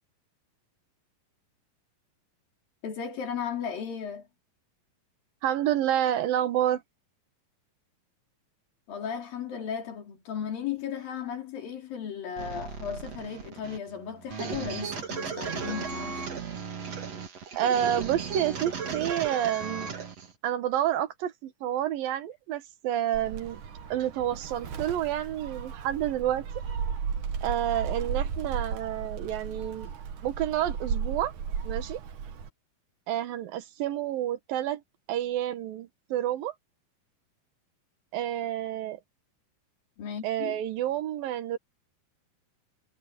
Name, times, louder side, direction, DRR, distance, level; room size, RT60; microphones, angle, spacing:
voice 1, 2.8-4.3 8.9-16.2 40.0-40.6, left 7 dB, 80° left, 5.3 m, -35 dB
voice 2, 5.4-6.8 17.6-19.9 20.4-23.6 23.9-26.4 27.4-29.9 30.2-31.3 31.6-32.0 33.1-34.8 35.1-36.5 38.1-39.0 40.2-41.6, right 11 dB, 80° right, 3.2 m, -29 dB
sound 1, 12.4-20.3, right 6 dB, 50° right, 3.6 m, -36 dB
Gull seagull, 23.1-32.5, right 6 dB, 65° right, 3.2 m, -35 dB
omnidirectional pair, 4.0 m